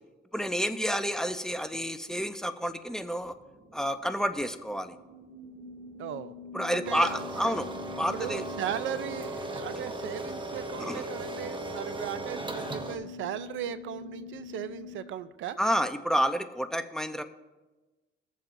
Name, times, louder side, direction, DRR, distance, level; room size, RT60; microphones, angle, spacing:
voice 1, 0.3-3.3 3.7-4.9 6.5-7.7 8.0-8.4 10.8-11.0 15.6-17.2, equal, 5° left, 9 dB, 0.7 m, -29 dB
sound 1, 3.2-15.0, left 2 dB, 50° right, 2.7 m, -44 dB
voice 2, 6.0-6.3 6.7-7.2 7.4-7.5 8.1-15.6, right 10 dB, 75° right, 14 dB, 0.6 m, -37 dB
sound 2, 6.8-13.0, right 2 dB, 25° right, 1.1 m, -38 dB
22.0 x 7.4 x 2.6 m, 1.2 s
cardioid pair, 90°, 20 cm